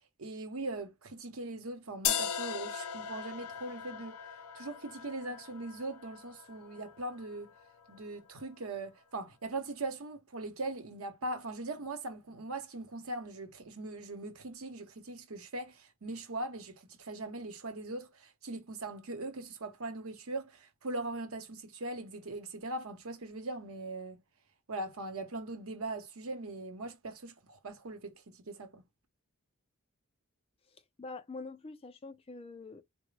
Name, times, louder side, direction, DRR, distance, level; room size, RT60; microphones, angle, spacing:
voice 1, 0.2-4.2 4.5-7.5 7.9-24.2 24.7-28.8, right 2 dB, 75° right, 0.8 m, -40 dB
sound 1, 2.0-8.0, left 8 dB, 85° left, 0.5 m, -39 dB
voice 2, 30.7-32.8, left 3 dB, 25° left, 0.3 m, -45 dB
3.8 x 2.1 x 3.2 m
head